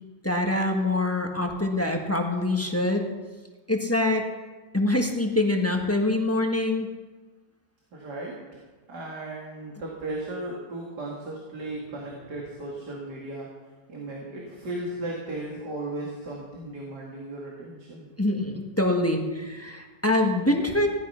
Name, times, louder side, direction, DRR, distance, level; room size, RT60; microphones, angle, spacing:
voice 1, 0.2-3.1 3.7-4.2 4.7-6.9 18.2-20.9, left 2 dB, 10° left, 2 dB, 1.3 m, -24 dB
voice 2, 7.9-8.6 8.9-13.5 13.9-18.1, right 2 dB, 85° right, -3 dB, 2.9 m, -36 dB
17.0 x 12.5 x 5.8 m, 1.3 s
omnidirectional pair, 1.7 m